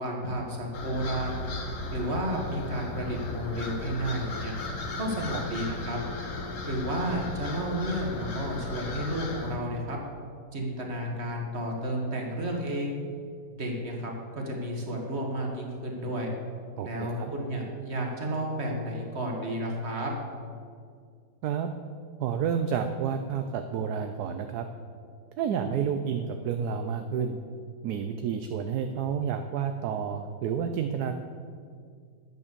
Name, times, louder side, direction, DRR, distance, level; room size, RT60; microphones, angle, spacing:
voice 1, 0.0-1.4 1.9-4.5 5.0-6.0 6.7-10.0 10.5-13.0 13.5-16.3 16.8-20.1, right 1 dB, 35° right, 0 dB, 2.0 m, -32 dB
sound 1, 0.7-9.5, left 3 dB, 50° left, 1.5 m, -36 dB
voice 2, 16.8-17.3 21.4-21.7 22.2-24.7 25.4-27.4 27.8-31.1, right 7 dB, 70° right, 7 dB, 1.1 m, -30 dB
11.0 x 8.8 x 6.8 m, 2.1 s
omnidirectional pair, 1.9 m